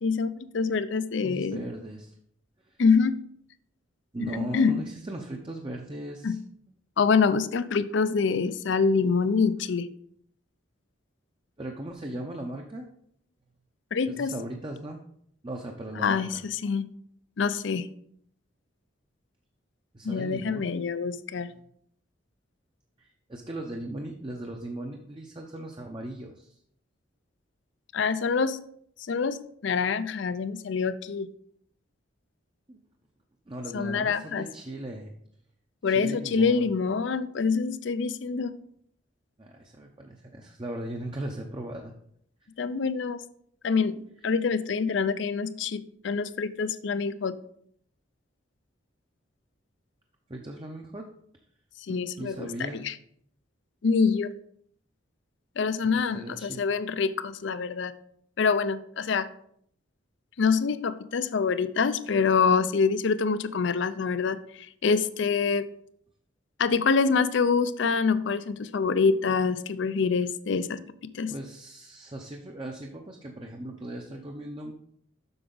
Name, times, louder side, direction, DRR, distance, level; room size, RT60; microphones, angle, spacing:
voice 1, 0.0-1.6 2.8-3.2 4.2-4.8 6.2-6.4 7.0-9.9 13.9-14.3 16.0-16.9 17.4-17.9 20.0-21.5 27.9-28.6 29.1-31.3 33.7-34.5 35.8-38.5 42.6-43.2 43.6-47.4 51.9-52.9 53.8-54.3 55.6-57.9 58.4-59.3 60.4-65.7 66.6-71.3, left 5 dB, 65° left, 15 dB, 0.5 m, -26 dB
voice 2, 1.2-2.2 2.6-2.8 4.1-6.4 11.6-12.9 14.1-15.0 15.4-16.4 19.9-20.7 23.0-26.6 32.7-32.8 33.5-35.1 35.9-36.7 39.4-41.9 50.3-51.1 51.9-52.8 55.8-56.6 71.3-74.7, right 1 dB, 25° right, 2 dB, 0.6 m, -38 dB
7.9 x 6.2 x 3.9 m, 0.67 s
head